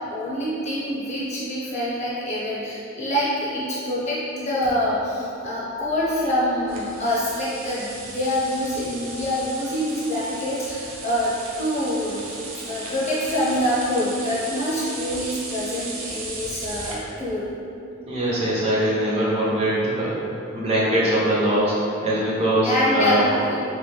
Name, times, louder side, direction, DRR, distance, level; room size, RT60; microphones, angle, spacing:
voice 1, 0.0-12.4 12.6-17.5 22.6-23.6, left 1 dB, 35° left, -8 dB, 0.7 m, -25 dB
sound 1, 6.7-16.9, right 3 dB, 80° right, 0.5 m, -36 dB
voice 2, 18.0-20.2 20.5-23.4, right 1 dB, 30° right, -7 dB, 0.5 m, -22 dB
3.0 x 2.1 x 3.1 m, 2.8 s
head